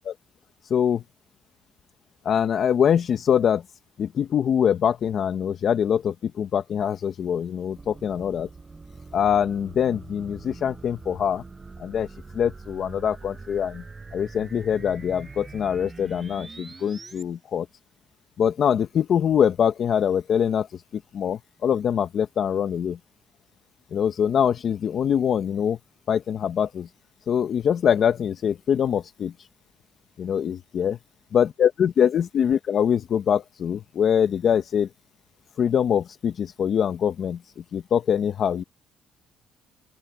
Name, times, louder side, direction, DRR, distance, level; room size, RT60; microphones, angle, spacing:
voice 1, 0.6-1.0 2.2-3.6 4.0-8.5 9.1-11.4 11.8-12.1 12.3-13.8 14.1-17.7 18.4-23.0 23.9-25.8 26.1-26.9 27.3-29.3 30.2-31.0 31.3-34.9 35.6-37.4 37.7-38.6, left 8 dB, 55° left, 1.1 m, -23 dB
sound 1, 7.7-17.2, right 3 dB, 25° right, 7.9 m, -43 dB
open air
cardioid pair, 110°, 0 cm